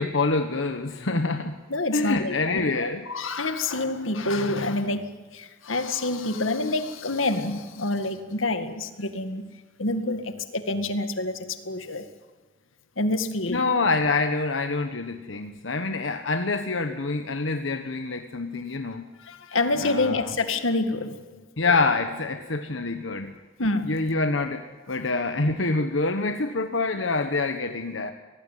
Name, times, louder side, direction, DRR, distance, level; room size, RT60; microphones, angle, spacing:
voice 1, 0.0-1.6 1.9-3.0 13.5-19.1 19.8-20.3 21.6-23.4 23.8-28.1, left 3 dB, 70° left, 6 dB, 1.2 m, -26 dB
voice 2, 1.7-9.5 9.8-12.1 13.0-13.6 19.2-21.4 23.6-24.0, left 2 dB, 85° left, 9 dB, 2.0 m, -27 dB
24.0 x 18.5 x 9.2 m, 1.3 s
head